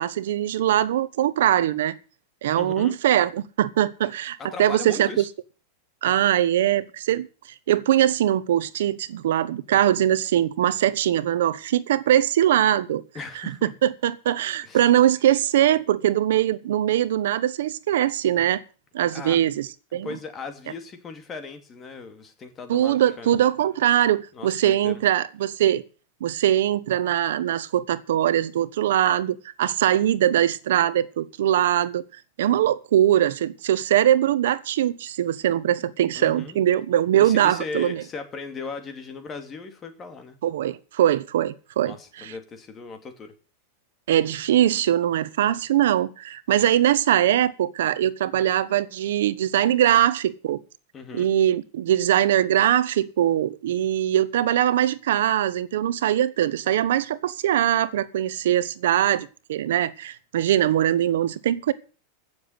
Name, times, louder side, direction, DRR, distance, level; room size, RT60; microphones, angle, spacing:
voice 1, 0.0-1.9 2.4-5.2 6.0-7.3 7.7-13.0 13.6-18.6 18.9-20.1 22.7-25.8 26.2-32.0 32.4-38.0 40.4-42.3 44.1-50.6 51.1-61.7, right 11 dB, 80° right, 1.0 m, -22 dB
voice 2, 2.5-3.0 4.4-5.3 13.1-13.7 14.6-14.9 19.1-19.4 20.0-23.4 24.3-25.0 36.1-36.6 37.2-40.4 41.8-43.3 49.9-50.0 50.9-51.3, left 4 dB, 20° left, 2.6 m, -38 dB
16.0 x 7.3 x 7.9 m
supercardioid pair, 160°, 0 cm